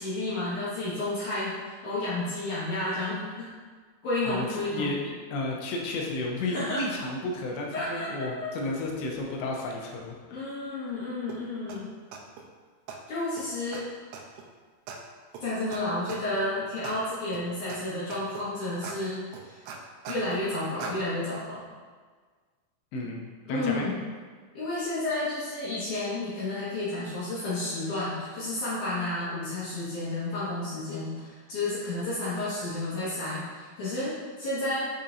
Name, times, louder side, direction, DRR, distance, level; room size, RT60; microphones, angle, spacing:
voice 1, 0.0-3.5 4.0-5.0 6.5-6.8 7.7-8.5 10.3-11.9 13.1-13.8 15.4-19.6 20.1-21.7 23.0-23.1 23.5-24.0 24.5-34.9, left 2 dB, 60° left, -10 dB, 2.4 m, -31 dB
voice 2, 4.2-5.0 5.3-10.5 22.9-23.9, left 2 dB, 90° left, -1 dB, 3.1 m, -32 dB
sound 1, 11.3-11.4 11.7-11.8 12.1-12.4 12.9-13.0 13.4-13.5 13.7-13.8 14.1-14.5 14.9-15.0 15.3-15.4 15.7-15.8 16.1-16.4 16.8-17.0 17.3-17.8 18.1-18.5 18.8-19.0 19.3-20.4 20.8-20.9, right 6 dB, 85° right, 2.4 m, -40 dB
7.0 x 5.6 x 2.6 m, 1.5 s
omnidirectional pair, 4.9 m